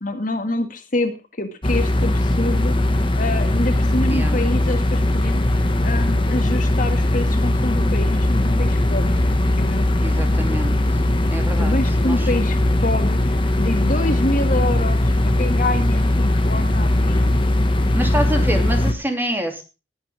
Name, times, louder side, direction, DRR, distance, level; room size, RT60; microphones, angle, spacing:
voice 1, 0.0-9.2 9.6-10.1 11.6-17.6, left 2 dB, 50° left, 6 dB, 2.1 m, -27 dB
sound 1, 1.6-18.9, left 1 dB, 30° left, 1.6 m, -19 dB
voice 2, 10.0-10.7 11.3-11.7 12.0-12.3 17.9-19.6, right 1 dB, 10° right, 4 dB, 2.9 m, -26 dB
20.5 x 8.8 x 3.5 m, 0.30 s
head